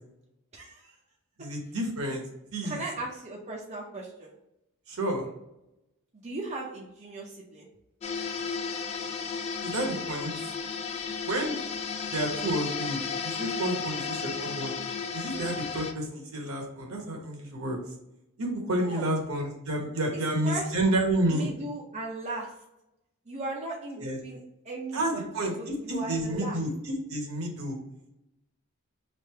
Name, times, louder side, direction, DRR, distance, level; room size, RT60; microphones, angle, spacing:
voice 1, 0.5-1.0 2.6-4.4 6.1-7.7 10.9-11.0 18.7-19.1 20.1-20.7 21.3-22.5 23.3-24.4 24.6-25.3 25.6-26.6, right 2 dB, 30° right, -2 dB, 0.6 m, -37 dB
voice 2, 1.4-2.2 2.5-2.8 4.9-5.3 9.6-10.3 11.2-11.6 12.1-14.7 15.1-17.8 18.4-21.5 24.0-24.2 24.9-25.5 25.9-27.8, right 1 dB, 70° right, 1 dB, 1.0 m, -30 dB
sound 1, 8.0-15.9, left 5 dB, 30° left, 0.3 m, -34 dB
3.2 x 2.5 x 4.4 m, 0.87 s
head